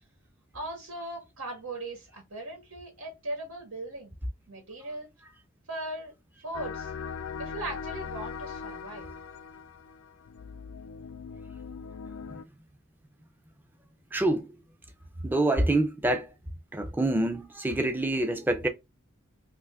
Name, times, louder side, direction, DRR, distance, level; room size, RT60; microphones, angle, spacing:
voice 1, 0.5-4.1 4.5-5.1 5.7-6.1 6.4-6.9 7.4-9.1, right 2 dB, 90° right, 1.2 m, -38 dB
sound 1, 6.5-12.4, left 6 dB, 75° left, 0.4 m, -40 dB
voice 2, 14.1-14.5 15.2-16.3 16.7-18.7, right 1 dB, 10° right, 0.4 m, -26 dB
2.6 x 2.4 x 3.4 m
head